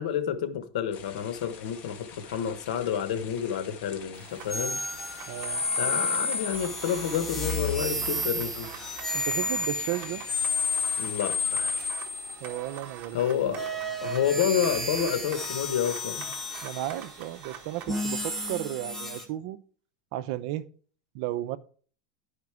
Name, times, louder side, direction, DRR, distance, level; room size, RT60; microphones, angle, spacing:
voice 1, 0.0-4.8 5.8-8.7 11.0-11.8 13.1-16.3, left 9 dB, 85° left, 1.3 m, -29 dB
sound 1, 0.9-11.9, left 7 dB, 40° left, 1.6 m, -47 dB
sound 2, 4.1-18.6, right 10 dB, 45° right, 1.1 m, -46 dB
sound 3, 4.5-12.8 13.5-19.2, left 2 dB, 5° left, 1.7 m, -31 dB
voice 2, 5.3-5.6 9.1-10.2 12.4-13.6 16.6-19.6 20.1-20.7 21.1-21.6, right 14 dB, 65° right, 0.7 m, -34 dB
11.0 x 5.1 x 4.9 m
supercardioid pair, 140°, 4 cm